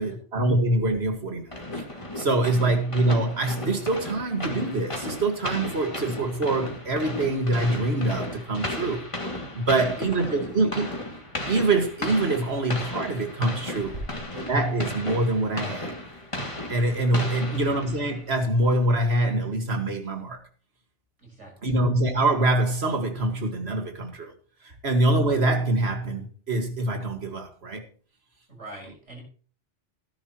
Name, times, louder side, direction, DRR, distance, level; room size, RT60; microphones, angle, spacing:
voice 1, 0.0-1.9 2.2-9.1 9.5-10.9 11.5-13.9 14.5-16.0 16.7-20.4 21.6-24.3 24.6-27.8, right 2 dB, 60° right, 2.2 m, -25 dB
sound 1, 1.5-18.3, left 1 dB, 25° left, 2.5 m, -35 dB
voice 2, 9.6-10.8 17.2-17.5 21.2-21.8 28.5-29.2, right 2 dB, 80° right, 6.2 m, -44 dB
17.5 x 10.0 x 3.1 m
omnidirectional pair, 1.2 m